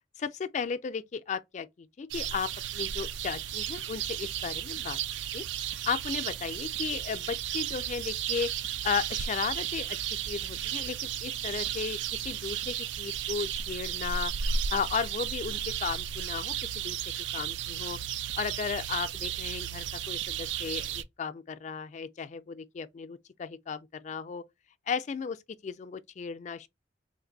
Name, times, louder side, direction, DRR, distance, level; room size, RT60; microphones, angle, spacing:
voice 1, 0.2-5.0 5.3-5.4 5.9-8.5 8.8-12.0 12.2-14.3 14.7-17.0 17.3-18.0 18.4-24.4 24.9-25.4 25.6-26.7, left 6 dB, 40° left, 0.3 m, -35 dB
sound 1, 2.1-21.0, right 9 dB, 75° right, 0.3 m, -34 dB
3.2 x 2.5 x 3.8 m
head